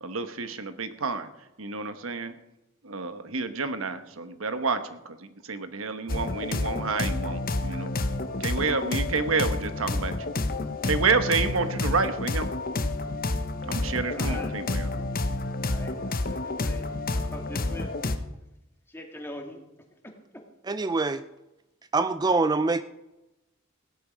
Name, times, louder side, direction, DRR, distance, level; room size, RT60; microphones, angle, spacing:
voice 1, 0.0-1.3 1.6-2.3 2.8-4.8 5.5-7.9 8.4-10.1 10.8-12.5 13.7-14.9, right 4 dB, 85° right, 10 dB, 1.1 m, -29 dB
sound 1, 6.1-18.2, left 2 dB, 45° left, 0.8 m, -29 dB
voice 2, 14.1-14.6 15.7-16.9 17.1-18.1 18.9-19.6, left 1 dB, 10° left, 2 dB, 2.0 m, -42 dB
voice 3, 20.7-21.2 21.9-22.8, right 3 dB, 20° right, 12 dB, 0.4 m, -24 dB
16.5 x 10.5 x 5.0 m, 0.97 s
head